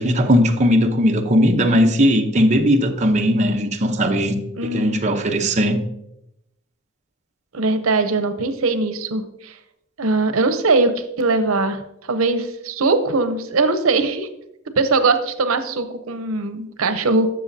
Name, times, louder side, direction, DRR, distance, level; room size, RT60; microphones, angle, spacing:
voice 1, 0.0-4.4 4.6-5.8, equal, 35° right, 0.8 m, -18 dB
voice 2, 4.6-5.0 7.5-9.5 10.0-11.8 12.1-14.3 14.8-17.3, right 3 dB, 85° right, 0.7 m, -20 dB
12.5 x 7.0 x 2.7 m
head